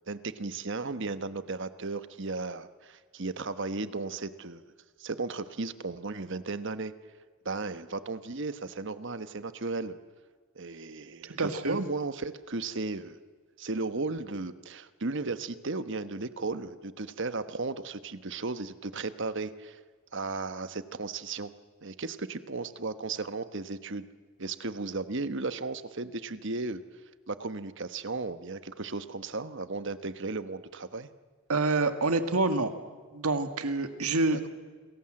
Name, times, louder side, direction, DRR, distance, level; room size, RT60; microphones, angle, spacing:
voice 1, 0.1-4.6 5.0-6.9 7.4-10.0 10.5-13.2 13.6-19.8 20.1-21.5 21.8-24.1 24.4-26.8 27.3-31.1 34.3-34.5, right 3 dB, 55° right, 12 dB, 1.2 m, -35 dB
voice 2, 11.4-11.8 31.5-32.7 33.1-34.5, right 3 dB, 85° right, 9 dB, 1.8 m, -27 dB
29.0 x 21.0 x 7.7 m, 1.5 s
head